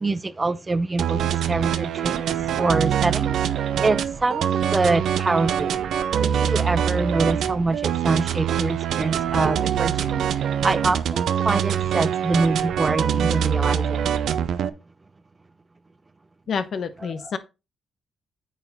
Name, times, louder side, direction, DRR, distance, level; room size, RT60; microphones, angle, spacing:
voice 1, 0.0-5.8 6.2-14.0, right 3 dB, 20° right, 0.6 m, -25 dB
sound 1, 1.0-14.7, right 9 dB, 75° right, 0.7 m, -24 dB
voice 2, 16.5-17.4, left 6 dB, 55° left, 1.0 m, -28 dB
9.1 x 4.9 x 4.2 m
cardioid pair, 105°, 0 cm